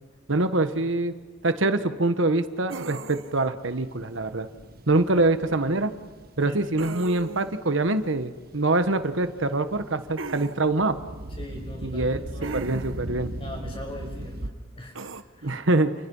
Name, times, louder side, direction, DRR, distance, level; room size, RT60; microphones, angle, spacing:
voice 1, 0.3-1.1 1.4-4.5 4.9-5.9 6.4-11.0 11.8-13.3 15.4-15.9, right 2 dB, 75° right, 10 dB, 1.4 m, -24 dB
sound 1, 2.7-3.5 6.8-7.6 10.2-10.5 12.4-13.1 14.9-15.2, right 4 dB, 90° right, 1.2 m, -37 dB
sound 2, 3.6-14.5, right 1 dB, 50° right, 1.2 m, -40 dB
voice 2, 11.4-12.6 13.4-15.6, left 1 dB, 30° left, 1 dB, 7.5 m, -41 dB
30.0 x 30.0 x 5.6 m, 1.3 s
head